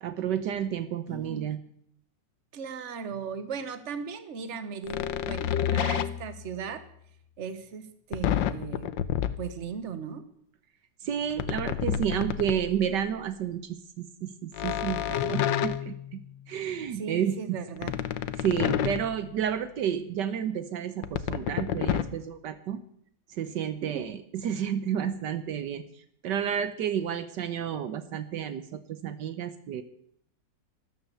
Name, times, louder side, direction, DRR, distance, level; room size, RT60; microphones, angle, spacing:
voice 1, 0.0-1.6 11.0-16.2 16.5-17.6 18.4-22.8 23.3-25.8 26.2-29.8, right 9 dB, 75° right, 12 dB, 1.5 m, -31 dB
voice 2, 1.1-1.5 2.5-6.8 7.4-8.9 9.4-10.2 16.9-17.9 23.8-24.2, right 6 dB, 45° right, 12 dB, 1.4 m, -37 dB
sound 1, 4.9-6.4 8.1-9.5 11.3-12.8 14.5-16.5 17.8-19.5 21.0-22.0, left 10 dB, 90° left, 1.5 m, -29 dB
13.5 x 12.5 x 6.9 m, 0.68 s
omnidirectional pair, 2.0 m